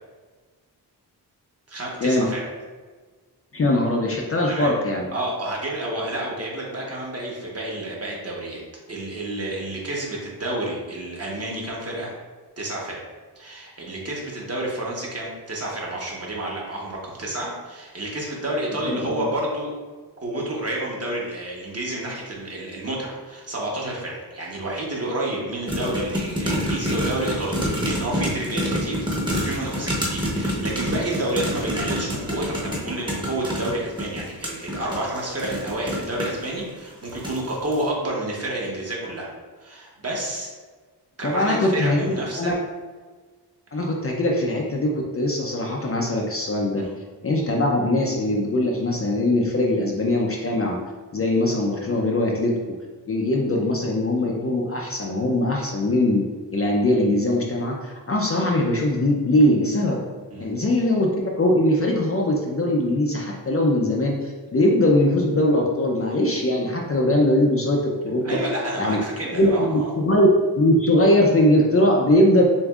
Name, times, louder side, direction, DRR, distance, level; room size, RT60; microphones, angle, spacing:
voice 1, 1.7-2.5 4.5-4.7 5.1-8.6 8.9-12.1 12.6-13.0 13.3-19.7 20.2-29.1 29.4-39.3 39.6-40.5 41.2-42.5 46.8-46.9 60.3-60.5 68.2-69.9, right 1 dB, 35° right, -3 dB, 1.0 m, -29 dB
voice 2, 3.5-5.1 18.8-19.1 41.2-42.5 43.7-46.9 47.2-50.8 51.1-52.5 53.1-56.2 56.5-60.0 60.4-68.4 68.8-69.0 69.3-70.3 70.6-72.4, left 1 dB, 35° left, -1 dB, 0.5 m, -21 dB
sound 1, 25.7-36.5 37.0-37.5 37.7-37.8, equal, 10° right, 0.9 m, -27 dB
6.9 x 2.6 x 2.3 m, 1.4 s
wide cardioid pair, 120°, 42 cm